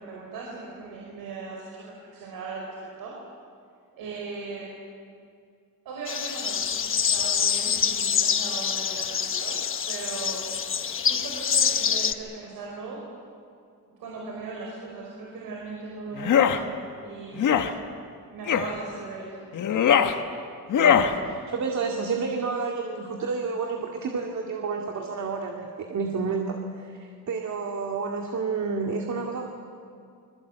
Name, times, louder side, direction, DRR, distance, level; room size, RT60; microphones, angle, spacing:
voice 1, 0.0-3.1 3.9-4.7 5.9-9.6 9.9-10.5 11.0-13.1 13.8-17.4 18.3-19.5, right 4 dB, 90° right, -2 dB, 5.2 m, -38 dB
sound 1, 6.1-12.1, left 7 dB, 35° left, 1.0 m, -26 dB
sound 2, 16.2-16.6 17.4-17.7 18.5-18.7 19.5-20.1 20.7-21.1, left 8 dB, 60° left, 1.6 m, -20 dB
voice 2, 20.7-29.5, right 4 dB, 55° right, 2 dB, 2.4 m, -30 dB
26.5 x 22.0 x 8.1 m, 2.3 s
cardioid pair, 140°, 34 cm